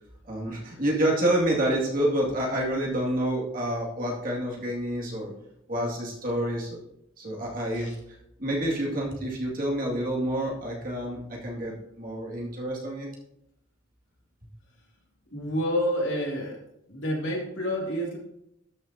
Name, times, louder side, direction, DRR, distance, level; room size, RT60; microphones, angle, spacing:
voice 1, 0.2-5.3 5.7-6.8 7.2-7.9 8.4-13.1, right 1 dB, 45° right, -3 dB, 2.3 m, -28 dB
voice 2, 15.3-16.6 16.9-18.2, equal, 70° left, -2 dB, 2.5 m, -28 dB
12.5 x 6.6 x 2.8 m, 0.80 s
head